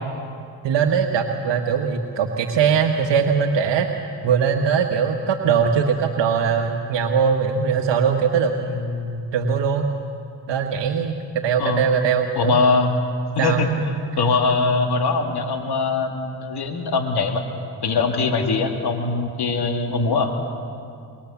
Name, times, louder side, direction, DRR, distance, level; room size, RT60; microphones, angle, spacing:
voice 1, 0.6-3.9 4.2-9.8 10.5-12.6 13.4-13.6, right 6 dB, 75° right, 2 dB, 1.5 m, -21 dB
voice 2, 12.4-12.9 13.4-13.7 14.2-17.4 17.8-20.3, left 4 dB, 60° left, 4 dB, 2.6 m, -21 dB
25.0 x 22.0 x 7.2 m, 2.3 s
cardioid pair, 70°, 43 cm